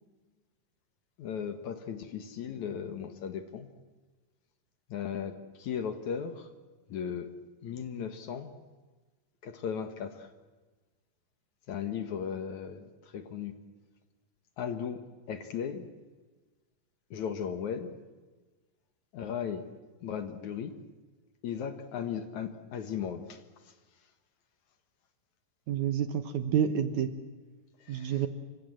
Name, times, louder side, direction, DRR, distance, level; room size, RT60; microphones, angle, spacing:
voice 1, 1.2-3.7 4.9-6.5 6.9-7.3 7.6-8.5 9.4-10.3 11.7-13.5 14.6-15.9 17.1-17.9 19.1-19.7 20.0-20.8 21.4-23.7 27.8-28.1, left 7 dB, 60° left, 9 dB, 2.5 m, -36 dB
voice 2, 25.7-27.1 27.9-28.3, right 9 dB, 65° right, 10 dB, 2.2 m, -28 dB
28.0 x 25.0 x 7.8 m, 1.3 s
omnidirectional pair, 4.2 m